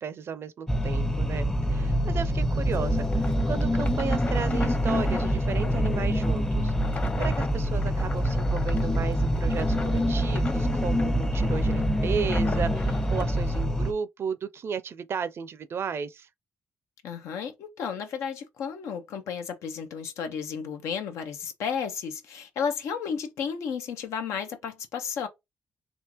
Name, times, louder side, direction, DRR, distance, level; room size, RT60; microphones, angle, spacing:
voice 1, 0.0-16.3, right 6 dB, 60° right, 0.4 m, -34 dB
sound 1, 0.7-13.9, equal, 10° left, 0.5 m, -25 dB
sound 2, 2.4-13.7, left 3 dB, 35° left, 1.0 m, -39 dB
voice 2, 17.0-25.3, left 6 dB, 90° left, 0.7 m, -33 dB
3.6 x 2.5 x 2.9 m
cardioid pair, 65°, 5 cm